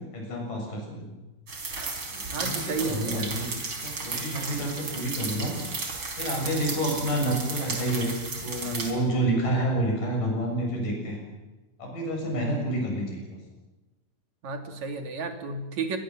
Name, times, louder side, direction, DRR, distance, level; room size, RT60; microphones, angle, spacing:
voice 1, 0.1-1.1 2.0-3.4 3.8-5.6 6.2-8.1 8.4-11.2 11.8-13.4, right 1 dB, 80° left, 1 dB, 8.5 m, -29 dB
sound 1, 1.5-8.9, right 3 dB, 40° right, 4.7 m, -34 dB
voice 2, 2.3-3.3 4.1-4.3 8.6-8.8 14.4-16.0, right 4 dB, 60° right, 5 dB, 4.0 m, -33 dB
27.0 x 21.5 x 7.4 m, 1.1 s
omnidirectional pair, 3.7 m